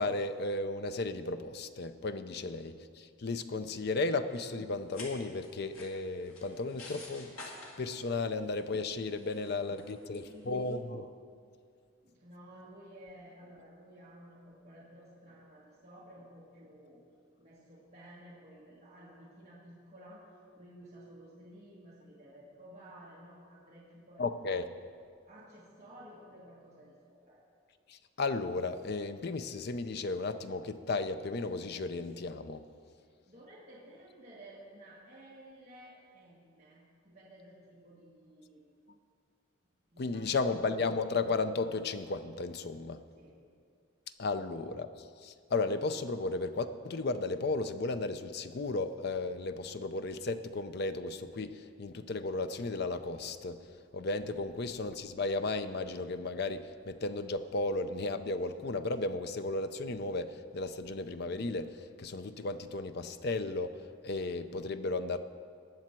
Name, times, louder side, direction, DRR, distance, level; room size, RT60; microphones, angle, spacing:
voice 1, 0.0-11.1 24.2-24.8 27.9-32.6 40.0-43.0 44.2-53.6 53.9-63.8 64.0-65.2, left 3 dB, 50° left, 10 dB, 0.5 m, -34 dB
sound 1, 4.8-10.7, left 2 dB, 85° left, 2.3 m, -51 dB
voice 2, 9.1-10.8 12.0-17.0 17.4-20.3 20.6-24.2 24.9-25.0 25.3-27.4 33.0-38.6 39.9-40.5 43.2-43.4 44.3-44.4, equal, 35° right, -8 dB, 1.8 m, -54 dB
19.0 x 7.1 x 4.5 m, 2.2 s
head